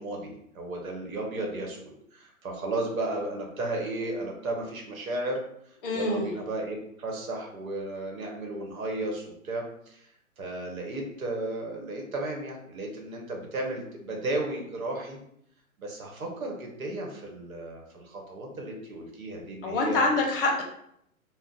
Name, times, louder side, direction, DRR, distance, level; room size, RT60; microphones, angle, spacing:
voice 1, 0.0-5.4 5.9-10.1 10.4-15.2 15.8-20.0, right 2 dB, 75° right, 1 dB, 1.0 m, -34 dB
voice 2, 5.8-6.3 19.6-20.6, left 2 dB, 40° left, 1 dB, 0.7 m, -25 dB
2.4 x 2.1 x 3.9 m, 0.73 s
hypercardioid pair, 125°, 42 cm